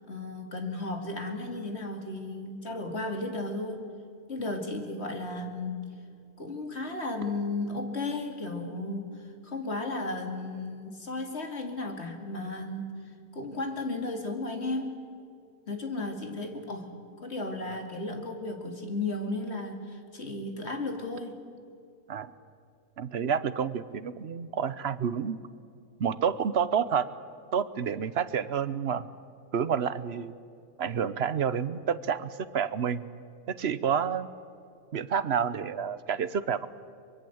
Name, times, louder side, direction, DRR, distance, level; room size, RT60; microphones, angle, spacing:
voice 1, 0.0-3.8 4.3-5.9 6.4-13.0 13.3-15.0 15.7-21.4, left 2 dB, 45° left, 4 dB, 2.8 m, -34 dB
voice 2, 23.0-25.4 26.0-27.1 27.5-29.1 29.5-30.3 30.8-33.1 33.6-34.3 34.9-36.7, right 7 dB, 50° right, 14 dB, 1.0 m, -29 dB
24.0 x 22.5 x 7.9 m, 2.4 s
omnidirectional pair, 1.6 m